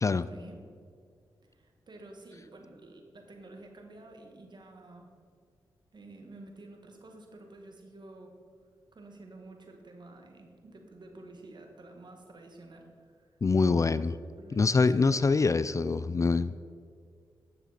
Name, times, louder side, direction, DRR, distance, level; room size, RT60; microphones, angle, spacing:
voice 1, 0.2-0.8 1.4-5.1 5.9-8.3 8.9-13.4 13.8-14.0 14.3-15.1, right 2 dB, 50° right, 3 dB, 1.7 m, -50 dB
voice 2, 13.4-14.1 14.5-16.7, left 4 dB, 35° left, 15 dB, 0.3 m, -25 dB
10.0 x 6.6 x 4.2 m, 2.2 s
supercardioid pair, 45°, 9 cm